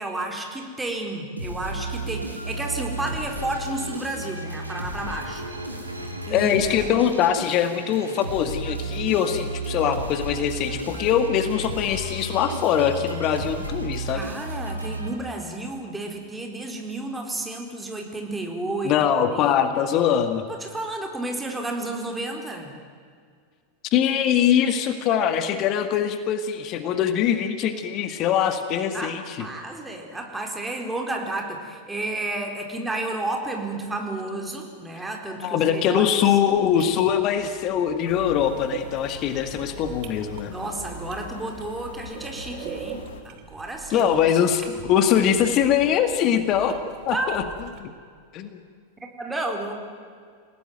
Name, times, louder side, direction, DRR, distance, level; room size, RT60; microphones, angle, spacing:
voice 1, 0.0-5.4 6.3-7.1 14.1-19.0 19.3-19.6 20.6-22.7 28.9-36.2 40.5-44.1 47.1-47.3 49.2-49.7, right 2 dB, 10° right, 2 dB, 4.3 m, -31 dB
sound 1, 1.4-15.6, right 2 dB, 85° right, 3.2 m, -33 dB
voice 2, 6.3-14.2 18.8-20.4 23.9-29.4 35.4-40.5 43.9-46.8 47.1-47.4 47.8-47.9 48.3-48.6, left 9 dB, 35° left, 9 dB, 1.8 m, -22 dB
sound 2, 36.5-47.8, right 9 dB, 40° right, 2.6 m, -42 dB
sound 3, 38.1-43.2, left 6 dB, 60° left, 2.2 m, -42 dB
29.0 x 18.0 x 9.2 m, 2.1 s
figure-of-eight pair, 90°, 0 cm